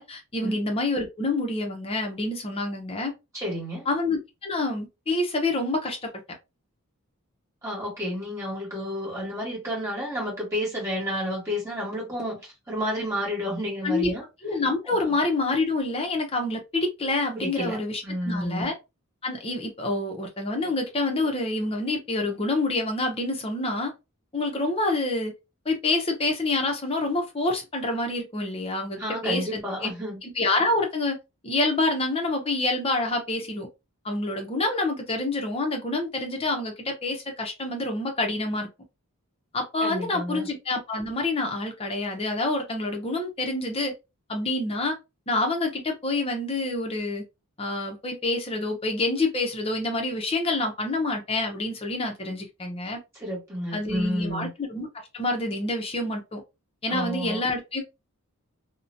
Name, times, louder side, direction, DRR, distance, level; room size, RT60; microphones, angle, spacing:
voice 1, 0.0-3.1 3.9-6.1 13.8-14.1 14.4-18.7 19.2-23.9 24.3-25.3 25.7-29.9 30.2-31.2 31.4-33.7 34.0-38.7 39.5-43.9 44.3-45.0 45.3-47.2 47.6-53.0 53.7-54.9 55.1-56.4 56.8-57.8, left 2 dB, 25° left, 0.6 m, -27 dB
voice 2, 3.3-3.9 7.6-14.2 14.9-15.1 17.3-18.7 29.0-30.2 39.8-40.5 53.1-54.5 56.9-57.4, equal, 15° right, 1.4 m, -31 dB
2.7 x 2.1 x 2.6 m
head